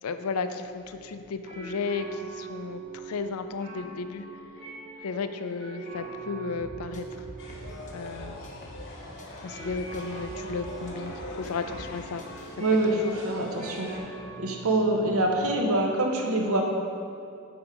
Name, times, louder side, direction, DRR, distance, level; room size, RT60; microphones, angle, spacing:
voice 1, 0.0-4.3 5.0-7.1 7.9-8.4 9.4-12.2 12.9-13.0, left 4 dB, 90° left, 9 dB, 0.4 m, -34 dB
sound 1, 0.6-15.6, right 5 dB, 30° right, 1.5 m, -43 dB
sound 2, 6.6-8.9 9.2-11.9 12.2-12.6, equal, 35° left, 0.7 m, -45 dB
sound 3, 7.4-14.0, left 2 dB, 60° left, 1.0 m, -43 dB
voice 2, 12.6-13.9 14.4-16.7, right 1 dB, 80° right, 1 dB, 0.9 m, -25 dB
8.6 x 3.8 x 4.8 m, 2.4 s
head